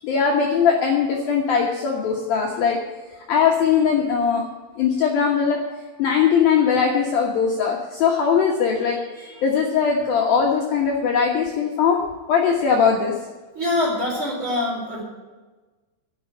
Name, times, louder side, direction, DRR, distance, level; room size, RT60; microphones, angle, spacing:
voice 1, 0.0-2.8 3.3-4.4 4.8-5.6 6.0-12.0 12.3-13.1, left 6 dB, 65° left, -1 dB, 2.6 m, -20 dB
voice 2, 13.5-15.0, left 2 dB, 25° right, -3 dB, 4.3 m, -24 dB
11.5 x 7.7 x 9.3 m, 1.3 s
omnidirectional pair, 5.6 m